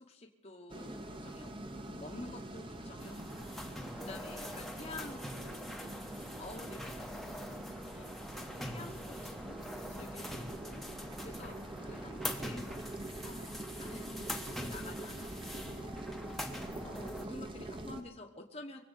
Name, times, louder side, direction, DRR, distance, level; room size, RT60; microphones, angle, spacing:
voice 1, 0.0-5.2 6.4-7.5 7.8-8.1 8.4-10.8 11.2-16.4 16.8-18.8, left 2 dB, 30° left, 1 dB, 1.2 m, -50 dB
sound 1, 0.7-18.0, right 1 dB, 25° right, 1.1 m, -44 dB
sound 2, 3.0-17.2, left 1 dB, ahead, 1.0 m, -44 dB
voice 2, 5.1-6.6, right 1 dB, 70° right, 0 dB, 4.9 m, -62 dB
23.0 x 8.5 x 6.5 m, 0.95 s
head